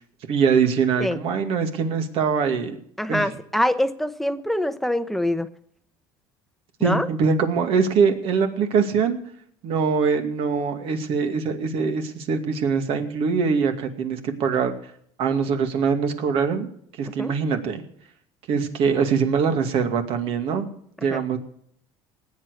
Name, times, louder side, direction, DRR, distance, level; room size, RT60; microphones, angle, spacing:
voice 1, 0.3-2.8 3.1-3.3 6.8-9.2 9.6-14.7 15.2-16.7 17.0-17.8 18.5-20.7 21.0-21.4, right 6 dB, 60° right, 6 dB, 2.4 m, -23 dB
voice 2, 3.0-5.5 6.8-7.1 17.2-17.3 21.1-21.2, left 1 dB, ahead, 11 dB, 1.0 m, -24 dB
19.0 x 8.9 x 6.6 m, 0.65 s
cardioid pair, 120°, 11 cm